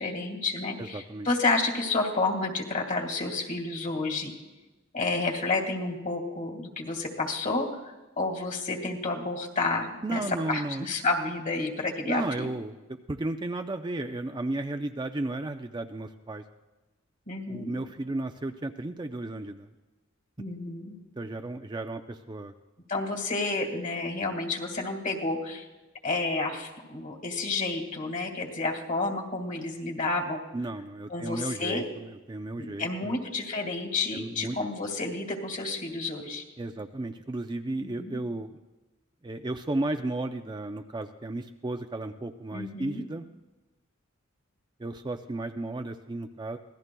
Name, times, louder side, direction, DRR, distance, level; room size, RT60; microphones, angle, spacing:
voice 1, 0.0-4.3 4.9-7.8 8.2-12.5 17.3-17.7 20.4-21.0 22.9-25.7 26.0-30.4 31.1-31.8 32.6-36.4 38.0-38.2 42.5-43.0, left 3 dB, 40° left, 3 dB, 1.9 m, -30 dB
voice 2, 0.8-1.3 10.0-10.9 12.1-12.8 13.1-16.4 17.5-19.7 21.2-22.5 30.5-33.2 34.1-34.6 36.6-38.5 39.2-43.3 44.8-46.6, right 2 dB, 20° right, 6 dB, 0.4 m, -34 dB
25.0 x 18.0 x 2.3 m, 1.1 s
head